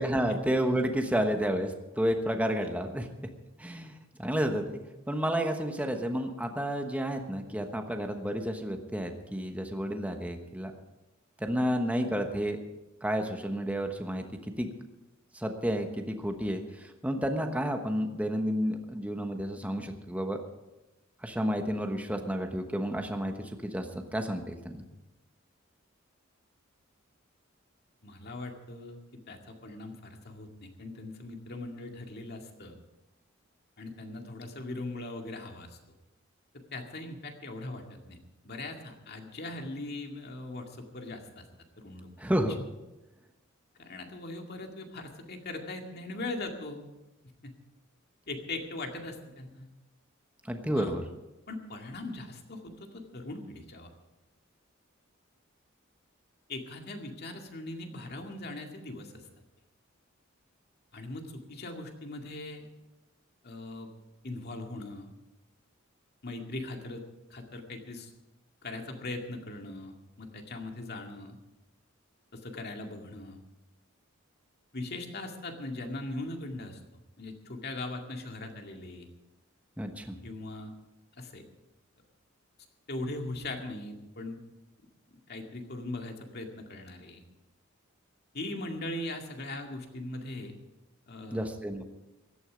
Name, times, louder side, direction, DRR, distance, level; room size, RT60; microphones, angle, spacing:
voice 1, 0.0-3.1 3.6-4.7 5.1-10.7 11.4-12.6 13.0-14.7 15.3-20.4 21.2-23.9 24.1-24.8 42.2-42.6 50.5-51.0 79.8-80.1 91.3-91.8, equal, 5° right, 4 dB, 1.2 m, -31 dB
voice 2, 28.0-29.0 29.3-32.8 33.8-35.8 36.5-38.2 38.4-41.4 41.8-42.3 43.8-46.9 47.4-47.5 48.3-49.7 50.8-50.9 51.5-53.9 56.5-59.2 60.9-62.7 63.4-63.9 64.2-65.1 66.2-67.0 67.3-68.1 68.6-71.4 72.3-73.4 74.7-76.8 77.2-79.1 80.2-80.7 81.2-81.4 82.9-84.4 85.1-87.2 88.3-90.6 91.1-91.5, left 2 dB, 50° left, 3 dB, 2.2 m, -40 dB
16.5 x 12.5 x 5.1 m, 1.0 s
head